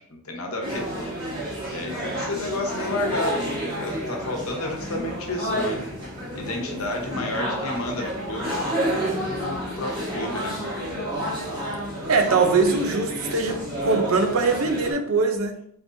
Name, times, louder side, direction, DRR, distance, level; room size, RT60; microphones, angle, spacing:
voice 1, 0.1-1.3 1.7-5.8 6.3-9.0 9.3-10.6, left 2 dB, 85° left, 2 dB, 1.0 m, -31 dB
sound 1, 0.6-14.9, equal, 25° right, 1.5 m, -30 dB
voice 2, 12.1-15.6, right 4 dB, 75° right, 6 dB, 0.6 m, -22 dB
4.6 x 3.5 x 2.7 m, 0.68 s
head